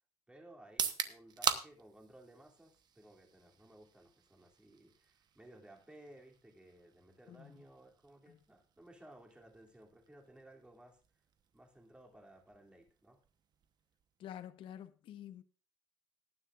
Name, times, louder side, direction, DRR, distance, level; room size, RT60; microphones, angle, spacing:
voice 1, 0.3-11.0 11.5-13.2, right 1 dB, 10° right, 2.7 m, -58 dB
sound 1, 0.6-14.5, right 7 dB, 50° right, 1.0 m, -44 dB
voice 2, 14.2-15.4, left 10 dB, 70° left, 0.8 m, -48 dB
19.0 x 9.9 x 2.4 m
cardioid pair, 115°, 9 cm